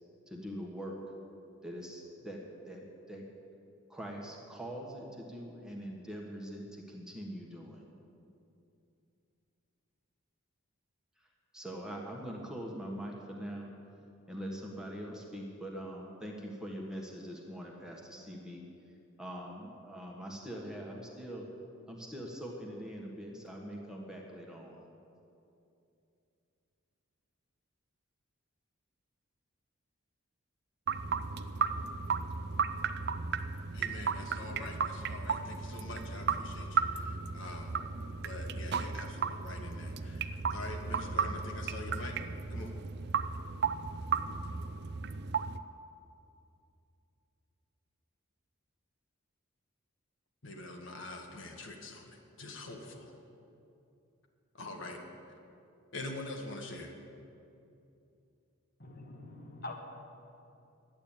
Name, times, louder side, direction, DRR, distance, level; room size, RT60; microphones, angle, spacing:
voice 1, 0.3-1.0 1.6-3.2 3.9-7.8 11.2-11.3 11.5-13.7 14.3-18.6 19.2-21.4 21.9-24.8, equal, 5° right, -1 dB, 1.4 m, -43 dB
sound 1, 30.9-45.6, right 5 dB, 50° right, 0.5 m, -35 dB
voice 2, 33.7-37.8 38.2-42.2 42.5-42.7 50.4-53.1 54.5-55.0 55.9-56.9, left 2 dB, 65° left, 2 dB, 1.4 m, -44 dB
voice 3, 58.8-59.8, left 2 dB, 45° left, 2 dB, 1.5 m, -44 dB
11.5 x 8.8 x 8.8 m, 2.7 s
head